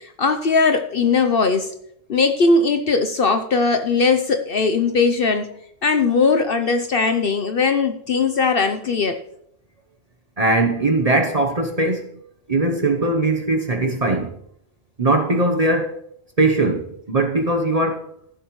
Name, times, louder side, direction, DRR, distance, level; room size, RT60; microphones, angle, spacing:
voice 1, 0.0-1.7 2.1-9.2, left 4 dB, 50° left, 0.8 m, -19 dB
voice 2, 10.4-12.1 12.5-14.4 15.0-16.0 16.4-18.1, right 2 dB, 35° right, 0.8 m, -20 dB
15.5 x 7.5 x 3.1 m
omnidirectional pair, 1.4 m